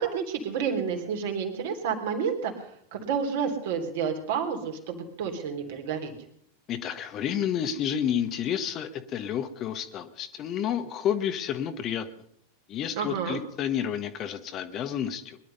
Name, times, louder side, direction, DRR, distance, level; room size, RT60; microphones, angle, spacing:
voice 1, 0.0-6.1 12.9-13.4, right 6 dB, 55° right, 3 dB, 3.2 m, -30 dB
voice 2, 6.7-12.1 12.7-15.4, left 9 dB, 35° left, 9 dB, 1.3 m, -30 dB
22.0 x 11.5 x 5.4 m, 0.67 s
figure-of-eight pair, 90°, 0 cm